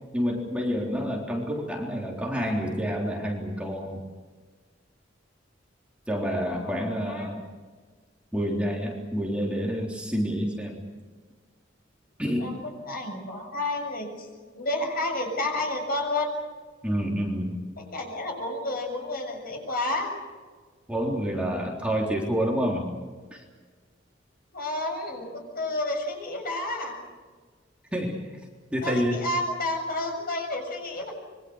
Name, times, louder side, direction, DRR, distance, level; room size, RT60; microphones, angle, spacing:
voice 1, 0.1-4.0 6.1-7.4 8.3-10.8 12.2-12.6 16.8-17.6 20.9-22.9 23.3-23.4 27.9-28.2 28.7-29.3, equal, 5° right, -1 dB, 3.7 m, -28 dB
voice 2, 6.5-7.3 12.4-12.6 12.9-14.3 14.5-16.4 17.9-20.1 24.5-27.0 28.8-31.1, left 2 dB, 50° left, 3 dB, 7.2 m, -30 dB
26.0 x 24.0 x 6.5 m, 1.5 s
head